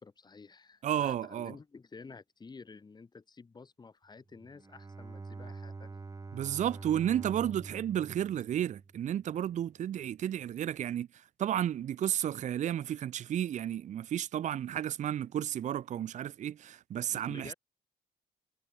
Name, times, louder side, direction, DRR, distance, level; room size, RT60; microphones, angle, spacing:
voice 1, 0.0-6.0 17.1-17.5, left 4 dB, 25° left, 5.4 m, -51 dB
voice 2, 0.8-1.5 6.3-11.1 11.4-17.5, right 10 dB, 45° right, 0.7 m, -32 dB
Bowed string instrument, 4.3-9.5, right 3 dB, 20° right, 4.8 m, -46 dB
cardioid pair, 110°, 17 cm